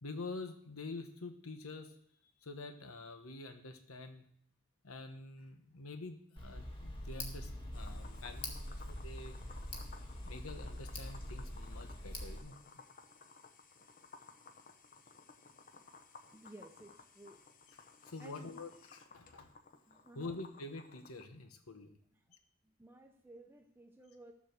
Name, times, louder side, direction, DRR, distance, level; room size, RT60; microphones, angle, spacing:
voice 1, 0.0-2.0 2.4-4.2 4.8-9.4 10.3-12.8 18.0-19.5 20.1-22.0 22.3-22.4, left 3 dB, 90° left, 7 dB, 1.2 m, -47 dB
Tick, 6.4-12.4, left 1 dB, 25° left, 1.9 m, -44 dB
sound 1, 7.7-21.2, left 4 dB, 40° left, 1.1 m, -58 dB
voice 2, 16.3-17.4 18.2-18.5 19.9-20.3 22.6-24.3, right 1 dB, 10° right, 3 dB, 0.8 m, -55 dB
13.5 x 7.3 x 6.7 m, 0.66 s
head